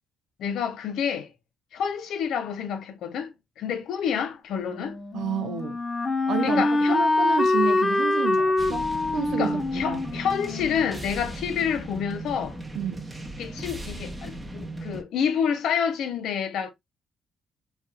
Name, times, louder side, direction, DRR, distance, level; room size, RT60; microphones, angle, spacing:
voice 1, 0.4-1.3 1.7-5.0 6.4-7.0 9.4-12.6 13.4-16.7, left 7 dB, 80° left, 0.6 m, -28 dB
Wind instrument woodwind instrument, 4.7-11.5, left 2 dB, 30° left, 0.9 m, -25 dB
voice 2, 5.1-5.8 6.3-8.9 9.1-10.0 12.8-13.1, right 8 dB, 75° right, 0.6 m, -30 dB
sound 1, 8.6-15.0, right 1 dB, 15° right, 0.9 m, -37 dB
3.1 x 2.8 x 2.3 m
cardioid pair, 90°, 0 cm